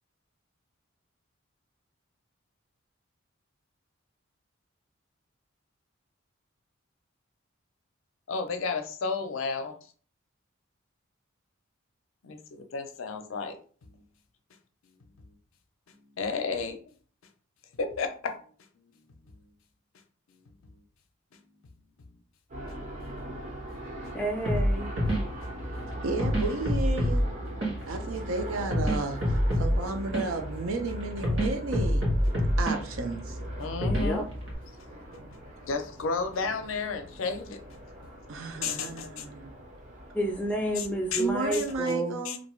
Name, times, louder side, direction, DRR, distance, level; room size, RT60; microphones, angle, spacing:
voice 1, 8.3-9.8 12.2-13.6 16.2-16.8 17.8-18.3 33.6-34.3 35.3-35.4 35.6-37.6 38.6-39.3 40.8-41.2 41.5-42.0 42.2-42.4, left 4 dB, 75° left, 0.5 m, -32 dB
sound 1, 22.5-41.8, right 1 dB, 35° right, 0.6 m, -43 dB
voice 2, 24.1-24.9 33.8-34.2 40.1-42.1, right 1 dB, 5° left, 0.4 m, -30 dB
sound 2, 24.4-34.5, equal, 60° right, 1.2 m, -28 dB
voice 3, 26.0-27.3 27.9-32.1 32.6-33.4 38.3-39.5 41.2-42.4, right 3 dB, 80° right, 0.5 m, -33 dB
2.5 x 2.2 x 3.0 m
head